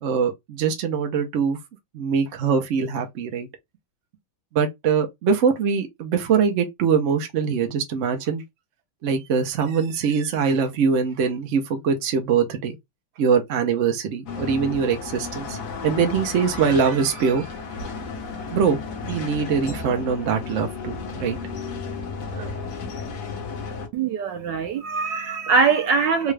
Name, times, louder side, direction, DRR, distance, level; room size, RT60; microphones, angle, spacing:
voice 1, 0.0-1.6 1.9-3.5 4.5-8.4 9.0-12.8 13.2-15.6 15.8-17.5 18.5-21.4 22.3-22.6, right 6 dB, 55° right, 0.8 m, -23 dB
sound 1, 14.3-23.9, left 4 dB, 60° left, 1.2 m, -33 dB
voice 2, 23.9-26.3, right 5 dB, 75° right, 1.1 m, -22 dB
3.7 x 2.3 x 3.2 m
omnidirectional pair, 2.3 m